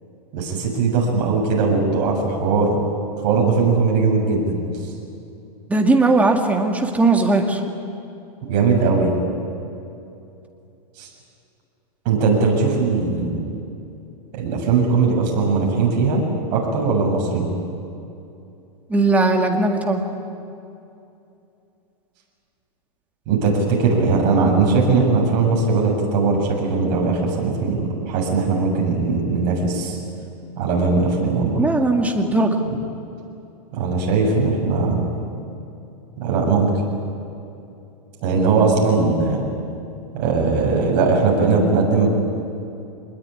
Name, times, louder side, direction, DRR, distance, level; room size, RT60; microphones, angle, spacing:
voice 1, 0.3-2.8 3.2-4.6 8.5-9.2 11.0-11.1 12.1-13.5 14.3-16.2 16.5-17.5 23.3-30.0 30.6-31.6 33.7-35.0 36.2-36.7 38.2-39.4 40.1-42.1, right 4 dB, 40° right, -1 dB, 7.3 m, -19 dB
voice 2, 5.7-7.6 18.9-20.0 31.6-32.6, right 2 dB, 5° right, 3 dB, 2.1 m, -18 dB
24.5 x 21.0 x 9.8 m, 2.7 s
supercardioid pair, 150°, 21 cm